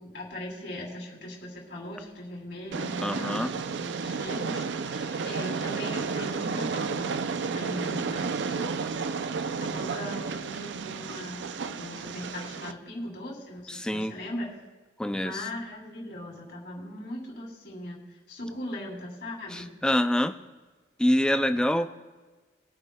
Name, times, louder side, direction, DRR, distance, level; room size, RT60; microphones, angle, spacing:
voice 1, 0.0-8.7 9.6-14.5 15.1-19.7 21.7-21.9, left 1 dB, 55° left, -2 dB, 2.9 m, -39 dB
Train, 2.7-12.7, right 5 dB, 65° right, 0.4 m, -32 dB
voice 2, 3.0-3.5 13.7-14.1 15.0-15.5 19.5-20.3 21.0-21.9, equal, 5° left, 8 dB, 0.3 m, -26 dB
23.0 x 8.8 x 2.3 m, 1.3 s
head